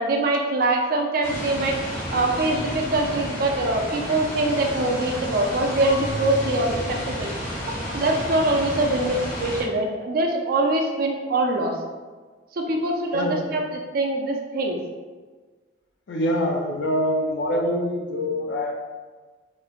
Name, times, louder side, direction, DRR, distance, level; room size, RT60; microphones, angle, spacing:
voice 1, 0.0-7.3 7.9-11.8 12.5-14.8, right 2 dB, 50° right, 1 dB, 0.3 m, -23 dB
sound 1, 1.2-9.6, equal, 40° left, 0.9 m, -31 dB
Marimba xylophone / Wood, 5.8-8.7, equal, 85° right, 0.7 m, -37 dB
voice 2, 13.1-13.4 16.1-18.7, equal, 65° left, 1 dB, 0.4 m, -24 dB
3.0 x 2.0 x 2.3 m, 1.4 s
head